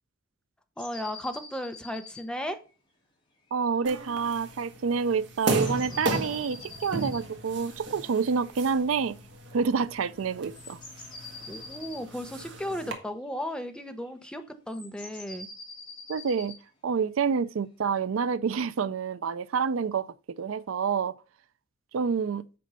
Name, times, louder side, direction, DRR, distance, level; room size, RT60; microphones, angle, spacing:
sound 1, 0.8-2.3 2.7-2.8 4.2-4.3 5.4-7.3 10.5-12.0 13.2-14.3 14.7-16.6, left 3 dB, 25° left, 2.4 m, -45 dB
voice 1, 0.8-2.6 11.4-15.5, equal, 5° left, 0.8 m, -35 dB
voice 2, 3.5-9.2 9.5-10.8 16.1-16.5 16.8-20.1 20.4-21.1 21.9-22.4, right 6 dB, 75° right, 0.4 m, -28 dB
sound 2, 3.8-12.9, right 2 dB, 60° right, 1.7 m, -36 dB
7.7 x 5.4 x 5.4 m
head